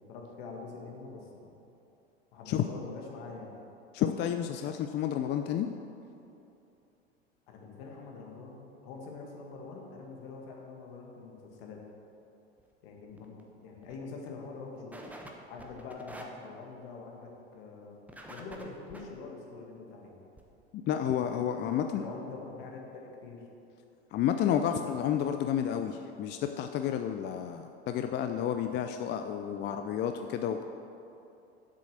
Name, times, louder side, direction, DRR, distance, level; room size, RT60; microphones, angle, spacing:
voice 1, 0.0-1.6 2.3-3.6 7.5-11.8 12.8-15.0 15.5-18.0 18.3-20.1 21.7-23.4, left 4 dB, 60° left, 0 dB, 2.0 m, -45 dB
voice 2, 3.9-5.7 20.9-22.0 24.1-30.6, left 9 dB, 35° left, 7 dB, 0.5 m, -30 dB
sound 1, 12.6-12.7 13.1-13.4 13.8-14.0 14.3-14.4 14.9-15.3 15.6-16.2 18.1-19.0 20.4-20.5 21.1-21.2 21.4-21.5 21.7-21.8, right 1 dB, 5° right, 1.1 m, -47 dB
7.6 x 7.2 x 6.6 m, 2.8 s
hypercardioid pair, 85°, 33 cm